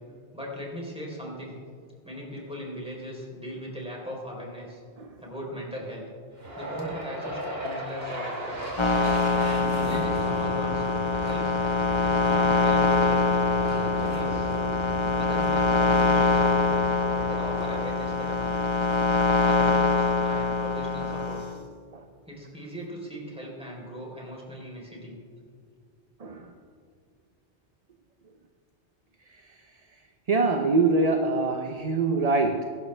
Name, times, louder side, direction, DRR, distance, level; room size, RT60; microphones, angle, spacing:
voice 1, 0.3-1.6 2.0-4.8 5.2-6.0 6.6-8.8 9.4-10.8 11.2-11.5 12.0-13.4 13.9-14.5 15.0-16.7 17.1-18.5 19.4-21.4 22.3-25.2, equal, 5° right, -3 dB, 3.6 m, -39 dB
sound 1, 6.4-20.6, equal, 60° right, 2.6 m, -38 dB
sound 2, 8.8-21.5, left 3 dB, 30° left, 0.8 m, -24 dB
voice 2, 26.2-26.5 30.3-32.6, right 3 dB, 40° right, 5 dB, 0.7 m, -24 dB
22.5 x 11.5 x 3.3 m, 2.1 s
omnidirectional pair, 1.2 m